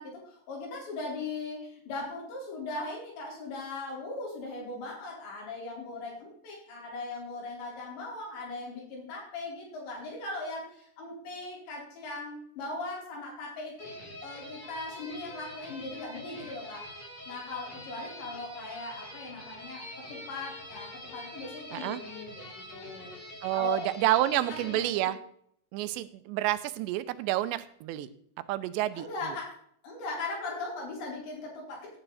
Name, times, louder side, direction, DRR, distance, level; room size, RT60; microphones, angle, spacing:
voice 1, 0.0-13.9 14.2-16.9 17.3-19.8 20.1-23.1 23.5-23.9 24.5-25.1 28.9-29.6 29.8-31.9, left 3 dB, 80° left, -2 dB, 6.6 m, -39 dB
sound 1, 13.8-24.8, left 1 dB, 40° left, 8.5 m, -45 dB
voice 2, 23.4-25.2 25.7-28.1 28.5-29.1, right 14 dB, 85° right, 14 dB, 2.9 m, -29 dB
16.5 x 10.0 x 4.1 m, 0.66 s
omnidirectional pair, 5.1 m